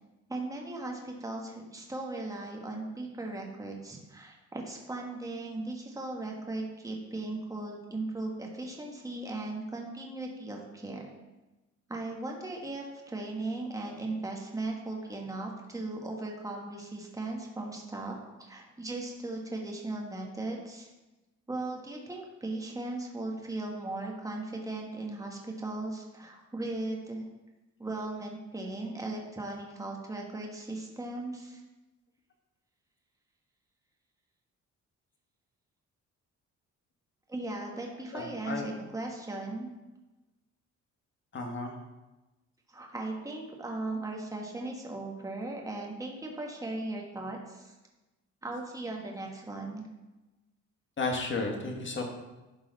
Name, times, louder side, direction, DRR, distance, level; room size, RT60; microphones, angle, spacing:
voice 1, 0.3-11.1 11.9-20.9 21.5-27.2 27.8-31.6 37.3-39.7 42.7-47.7 48.4-49.9, right 2 dB, 10° right, 0 dB, 1.4 m, -37 dB
voice 2, 38.1-38.6 41.3-41.7 51.0-52.0, left 3 dB, 40° left, 1 dB, 1.7 m, -33 dB
11.0 x 3.9 x 4.1 m, 1.1 s
cardioid pair, 90°, 30 cm